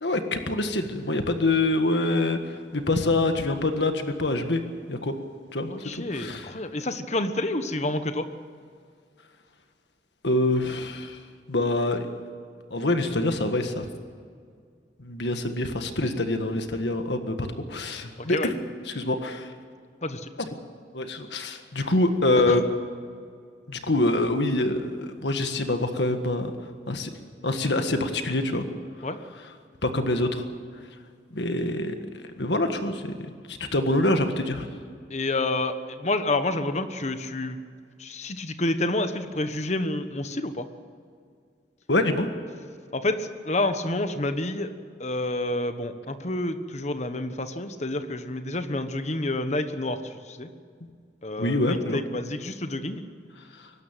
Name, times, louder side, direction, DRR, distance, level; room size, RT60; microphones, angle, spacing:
voice 1, 0.0-4.6 4.9-5.1 5.5-6.5 10.2-11.2 11.5-12.0 12.7-13.9 15.0-18.6 18.8-19.5 20.9-22.6 23.7-26.5 26.9-27.1 27.4-28.6 29.8-30.4 30.7-30.8 31.3-32.0 32.4-34.7 41.9-42.3 51.4-52.0 53.6-53.7, left 2 dB, 75° left, 6 dB, 1.6 m, -25 dB
voice 2, 5.7-8.3 18.2-18.5 20.0-20.3 22.5-22.6 29.0-29.2 35.1-37.6 38.0-40.7 42.9-44.7 45.0-50.5 51.2-53.0, left 2 dB, 40° left, 9 dB, 1.2 m, -29 dB
23.5 x 12.5 x 9.1 m, 2.1 s
head